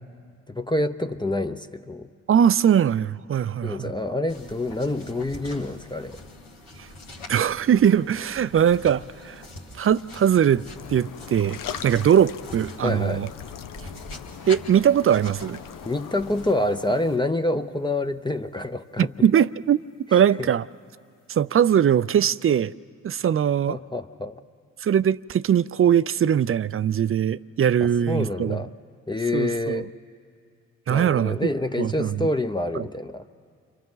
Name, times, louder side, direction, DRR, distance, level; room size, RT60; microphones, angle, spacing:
voice 1, 0.5-2.1 3.6-6.2 12.8-13.2 15.8-19.1 20.1-20.5 23.7-24.4 27.8-28.7 29.1-29.9 30.9-33.2, left 1 dB, 15° left, 0.7 m, -27 dB
voice 2, 2.3-3.9 6.8-6.9 7.3-9.4 9.8-10.6 10.9-13.3 14.5-15.6 19.0-19.8 20.1-20.7 21.3-22.7 23.0-23.8 24.8-28.6 29.3-29.9 30.9-31.4 31.8-32.3 32.7-32.8, right 9 dB, 40° right, 0.5 m, -21 dB
sound 1, 4.3-16.5, left 2 dB, 90° left, 2.1 m, -43 dB
sound 2, 10.7-17.2, left 9 dB, 65° left, 0.7 m, -40 dB
30.0 x 25.0 x 4.0 m
hypercardioid pair, 45°, 35 cm